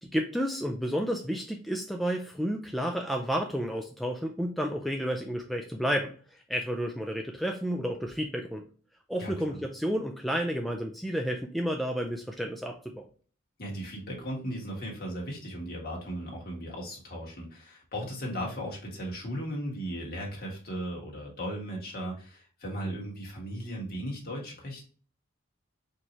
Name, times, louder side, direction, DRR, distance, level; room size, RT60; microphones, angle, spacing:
voice 1, 0.0-6.1 6.5-8.6 9.1-13.1, equal, ahead, 2 dB, 0.3 m, -31 dB
voice 2, 9.2-9.6 13.6-24.8, equal, 50° left, -2 dB, 1.5 m, -37 dB
4.4 x 2.8 x 3.0 m, 0.42 s
head